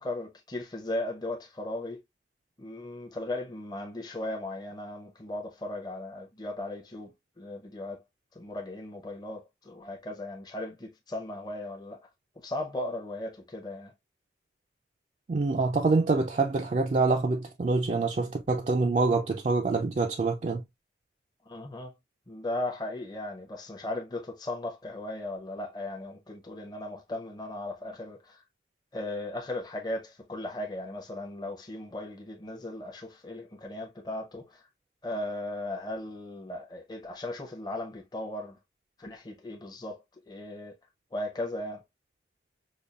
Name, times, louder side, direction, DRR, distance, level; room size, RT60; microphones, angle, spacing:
voice 1, 0.0-2.0 2.6-8.0 8.3-12.0 12.4-13.9 21.5-21.9 22.3-28.4 28.9-34.6 35.0-38.6 39.0-40.8 41.1-41.8, left 1 dB, 20° left, 0.6 m, -37 dB
voice 2, 15.3-20.6, right 3 dB, 40° right, 0.3 m, -26 dB
5.2 x 2.3 x 2.3 m
head